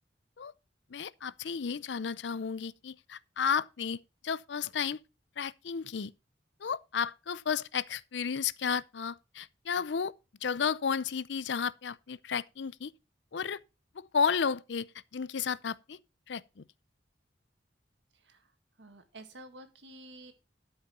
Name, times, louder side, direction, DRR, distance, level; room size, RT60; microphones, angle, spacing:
voice 1, 0.9-4.0 4.2-5.0 5.4-6.1 6.6-10.1 10.4-12.9 13.3-13.6 14.0-16.0 16.3-16.6, left 6 dB, 75° left, 0.5 m, -33 dB
voice 2, 18.1-20.3, right 1 dB, 80° right, 1.9 m, -51 dB
12.5 x 5.6 x 5.5 m
head